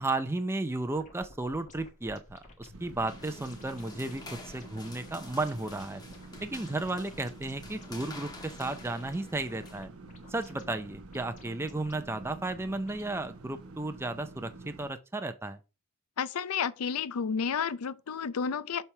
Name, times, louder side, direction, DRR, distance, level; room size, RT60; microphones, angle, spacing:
voice 1, 0.0-6.0 6.4-9.9 10.3-15.6, right 2 dB, 10° right, 0.4 m, -34 dB
sound 1, 0.9-13.2, left 1 dB, 35° left, 1.6 m, -54 dB
sound 2, 2.7-14.9, right 3 dB, 70° right, 0.8 m, -48 dB
sound 3, 3.1-9.8, left 2 dB, 20° left, 1.4 m, -49 dB
voice 2, 16.2-18.8, left 6 dB, 80° left, 0.5 m, -31 dB
7.1 x 3.4 x 5.7 m
head